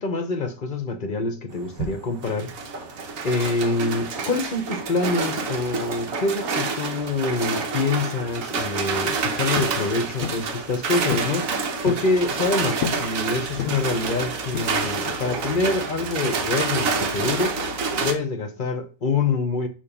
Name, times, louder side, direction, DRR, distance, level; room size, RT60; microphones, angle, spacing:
voice 1, 0.0-2.5 3.2-11.5 11.8-17.6 18.0-19.7, left 3 dB, 40° left, 0.9 m, -26 dB
sound 1, 1.5-18.1, right 4 dB, 70° right, 1.4 m, -28 dB
sound 2, 9.6-9.8 10.2-10.5 11.1-11.4 11.6-12.1 12.8-13.1 13.6-14.0 14.5-15.0, left 9 dB, 70° left, 0.9 m, -30 dB
6.9 x 2.9 x 5.6 m
omnidirectional pair, 1.5 m